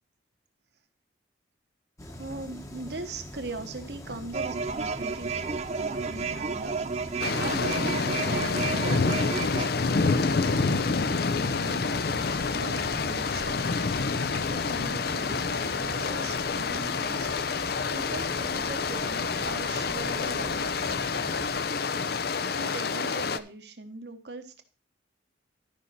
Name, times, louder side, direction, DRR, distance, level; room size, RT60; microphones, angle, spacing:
sound 1, 2.0-21.6, left 1 dB, 15° left, 1.0 m, -42 dB
voice 1, 2.1-14.0 14.3-20.9 22.6-24.6, right 3 dB, 60° right, 7 dB, 1.3 m, -41 dB
sound 2, 4.3-9.7, right 5 dB, 35° right, 0.4 m, -32 dB
sound 3, 7.2-23.4, left 4 dB, 55° left, 0.5 m, -28 dB
12.5 x 5.6 x 4.3 m, 0.37 s
head